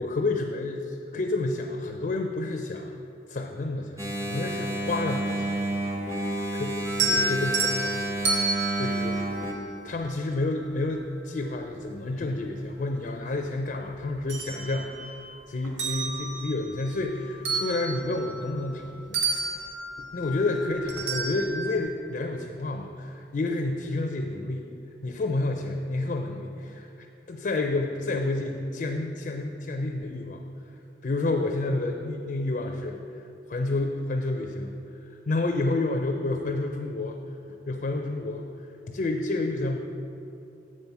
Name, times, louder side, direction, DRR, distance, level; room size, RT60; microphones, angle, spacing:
voice 1, 0.0-3.0 3.3-5.6 6.5-8.3 8.8-9.2 9.8-19.2 20.0-24.7 25.0-26.9 27.3-30.4 31.0-33.0 33.5-34.7 35.3-37.2 37.7-38.4 38.9-39.8, left 2 dB, 45° left, 3 dB, 0.4 m, -29 dB
Engine, 4.0-9.5, right 1 dB, 15° right, 0.6 m, -30 dB
sound 1, 6.9-10.2 11.8-11.9 12.5-13.7 14.0-15.3 15.6-18.8 19.1-21.8, right 3 dB, 85° right, 0.9 m, -31 dB
7.4 x 5.5 x 4.6 m, 2.7 s
head